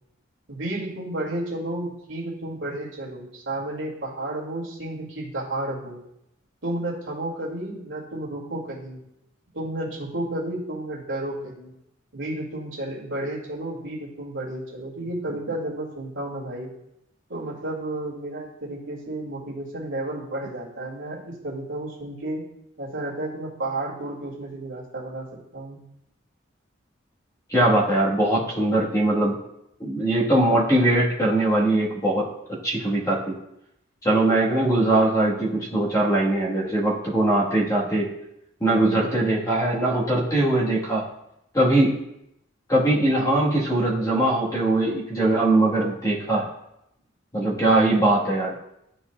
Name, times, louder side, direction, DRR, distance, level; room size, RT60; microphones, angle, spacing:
voice 1, 0.5-6.0 6.6-9.0 9.5-11.7 12.1-16.7 17.3-22.4 22.8-25.3 25.5-25.8, right 1 dB, 70° right, -4 dB, 1.9 m, -32 dB
voice 2, 27.5-29.3 29.8-33.4 34.0-38.1 38.6-41.1 41.5-41.9 42.7-46.5 47.3-48.6, right 1 dB, 15° left, -5 dB, 1.2 m, -21 dB
11.5 x 4.2 x 2.2 m, 0.82 s
head